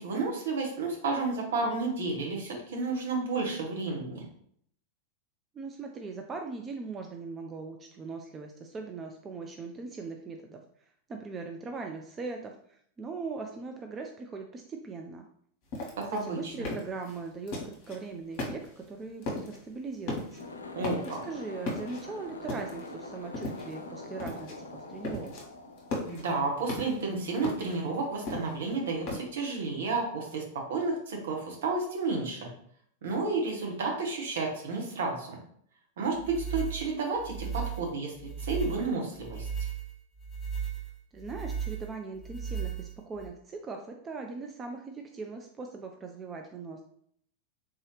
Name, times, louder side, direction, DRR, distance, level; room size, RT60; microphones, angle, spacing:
voice 1, 0.0-4.3 16.0-16.5 20.7-21.2 26.1-32.5 33.0-35.4 36.0-38.1 38.4-39.5, right 3 dB, 60° right, 0 dB, 1.0 m, -31 dB
voice 2, 5.5-10.6 11.1-15.3 16.2-20.4 21.2-25.4 41.1-46.8, right 4 dB, 20° right, 3 dB, 0.4 m, -40 dB
sound 1, 15.7-18.0 18.3-18.9 19.2-19.6 19.9-20.5 20.8-21.3 21.7-22.9 23.3-23.9 24.2-24.6 24.8-25.4 25.8-27.1 27.4-29.2, left 2 dB, 45° left, 1.1 m, -37 dB
sound 2, 20.4-26.8, left 2 dB, 75° left, 0.4 m, -44 dB
sound 3, 36.2-43.3, right 7 dB, 10° left, 0.9 m, -36 dB
3.6 x 2.7 x 3.1 m, 0.65 s
figure-of-eight pair, 90°, 0 cm